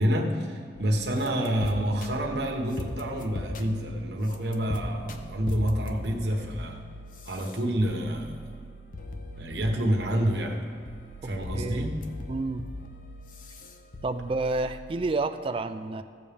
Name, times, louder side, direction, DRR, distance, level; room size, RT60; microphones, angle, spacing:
voice 1, 0.0-6.8 7.2-8.3 9.4-10.6 11.2-12.0, equal, 70° right, 1 dB, 1.1 m, -28 dB
sound 1, 0.8-15.0, left 1 dB, 50° left, 0.7 m, -40 dB
voice 2, 11.2-11.9 12.3-12.6 14.0-16.0, right 3 dB, 30° right, 9 dB, 0.3 m, -30 dB
15.5 x 7.1 x 3.5 m, 2.3 s
head